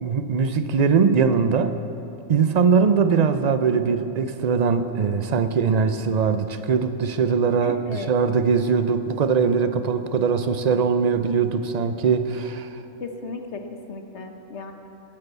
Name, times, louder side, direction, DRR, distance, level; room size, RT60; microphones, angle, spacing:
voice 1, 0.0-1.8 2.3-12.8, right 6 dB, 50° right, 10 dB, 0.5 m, -21 dB
voice 2, 7.6-8.1 13.0-13.6 13.9-14.7, left 4 dB, 60° left, 5 dB, 1.3 m, -35 dB
12.5 x 10.5 x 8.1 m, 2.9 s
omnidirectional pair, 1.4 m